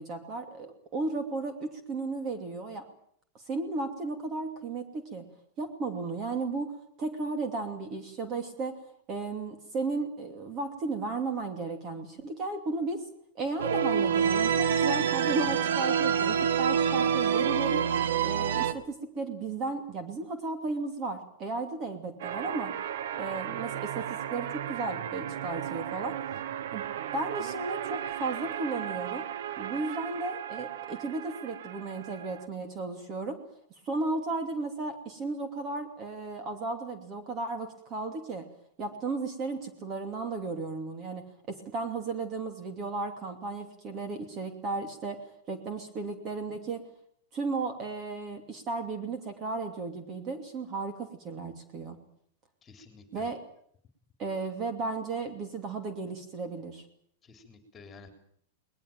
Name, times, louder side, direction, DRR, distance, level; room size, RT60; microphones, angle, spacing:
voice 1, 0.0-2.8 3.5-5.2 5.6-6.7 7.0-8.8 9.1-13.0 13.3-17.9 18.2-22.7 23.1-26.1 26.7-26.8 27.1-29.3 29.6-33.4 33.9-38.5 38.8-45.2 45.5-46.8 47.3-52.0 53.1-53.4 54.2-56.8, right 3 dB, 25° right, 7 dB, 2.8 m, -34 dB
sound 1, 13.6-18.7, right 7 dB, 90° right, 1.7 m, -26 dB
sound 2, 22.2-32.5, right 10 dB, 65° right, 1.1 m, -36 dB
voice 2, 52.6-53.3 57.2-58.1, left 4 dB, 15° left, 7 dB, 3.7 m, -51 dB
20.5 x 20.5 x 9.0 m, 0.66 s
supercardioid pair, 160°, 0 cm